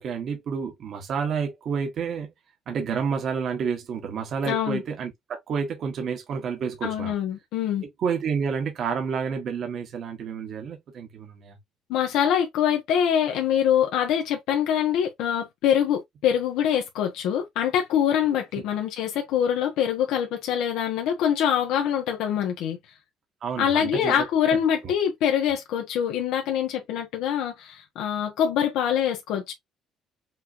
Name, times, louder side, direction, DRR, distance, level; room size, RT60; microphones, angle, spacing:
voice 1, 0.0-2.3 2.7-7.1 7.8-11.6 23.4-24.2 24.8-24.9, right 6 dB, 40° right, 1.2 m, -29 dB
voice 2, 4.4-4.8 6.8-7.8 11.9-22.8 23.6-29.5, left 9 dB, 90° left, 1.1 m, -24 dB
5.8 x 3.0 x 2.6 m
cardioid pair, 180°, 0 cm